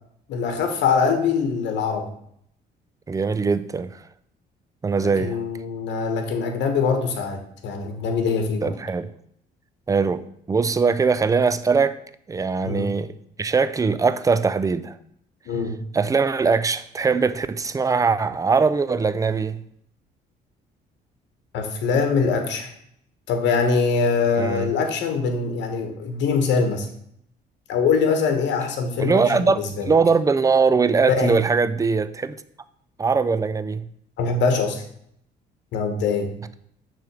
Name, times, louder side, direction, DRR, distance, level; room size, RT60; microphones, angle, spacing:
voice 1, 0.3-2.1 5.0-8.7 12.6-12.9 15.5-15.8 21.5-22.7 23.3-26.9 27.7-29.8 31.2-31.4 34.2-34.8 35.7-36.3, left 5 dB, 80° left, 1.3 m, -23 dB
voice 2, 3.1-4.0 4.8-5.4 8.6-9.1 9.9-12.0 12.3-15.0 15.9-19.6 24.4-24.7 29.0-32.4 33.0-33.9, right 5 dB, 20° right, 0.4 m, -21 dB
6.6 x 3.4 x 6.1 m
cardioid pair, 90°, 18 cm